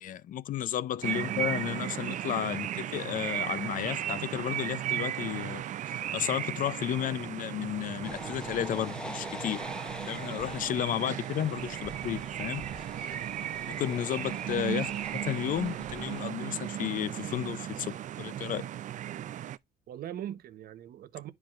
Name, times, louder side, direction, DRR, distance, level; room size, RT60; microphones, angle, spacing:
voice 1, 0.0-5.6 6.1-9.6 10.1-12.6 13.7-14.9 15.2-18.7, left 11 dB, 55° left, 0.5 m, -33 dB
sound 1, 1.0-19.6, right 11 dB, 45° right, 0.4 m, -36 dB
sound 2, 8.0-16.3, left 1 dB, 5° left, 0.7 m, -44 dB
voice 2, 19.9-21.3, right 11 dB, 65° right, 0.9 m, -42 dB
10.5 x 4.7 x 2.4 m
cardioid pair, 110°, 17 cm